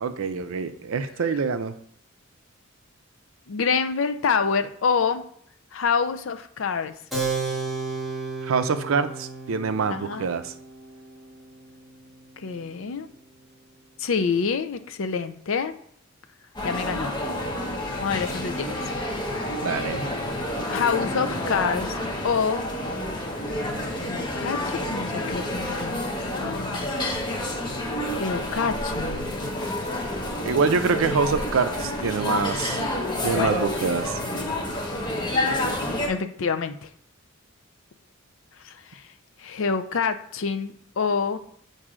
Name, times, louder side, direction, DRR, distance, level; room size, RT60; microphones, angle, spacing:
voice 1, 0.0-1.7 8.4-10.5 19.6-20.1 30.4-32.8 33.2-34.1, right 5 dB, 70° right, 10 dB, 0.4 m, -25 dB
voice 2, 3.5-5.2 5.7-6.9 9.9-10.3 12.4-13.1 14.0-15.8 16.6-17.1 18.0-18.7 20.7-22.0 22.2-22.7 24.0-26.9 28.2-29.4 33.3-33.5 36.1-36.9 38.6-39.0 39.4-41.4, left 5 dB, 65° left, 9 dB, 0.5 m, -27 dB
Keyboard (musical), 7.1-13.2, right 4 dB, ahead, 1.4 m, -34 dB
sound 1, 16.6-36.1, left 1 dB, 20° left, 0.9 m, -29 dB
7.3 x 2.6 x 4.9 m, 0.65 s
head